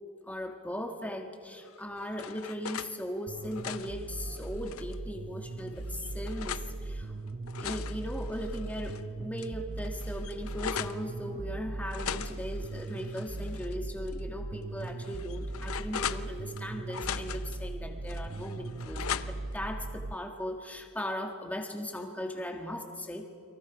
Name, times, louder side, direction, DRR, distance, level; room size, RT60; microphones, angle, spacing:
voice 1, 0.2-7.1 7.6-23.3, equal, 5° left, 4 dB, 1.6 m, -38 dB
sound 1, 1.6-2.9 3.4-5.0 5.6-6.7 7.3-9.0 9.4-9.5 9.8-11.0 11.9-13.7 14.1-14.2 14.8-16.6 16.9-17.6 18.1-19.6, left 8 dB, 80° left, 0.7 m, -39 dB
sound 2, 3.3-20.1, right 2 dB, 35° right, 0.5 m, -39 dB
30.0 x 23.5 x 5.1 m, 2.6 s
head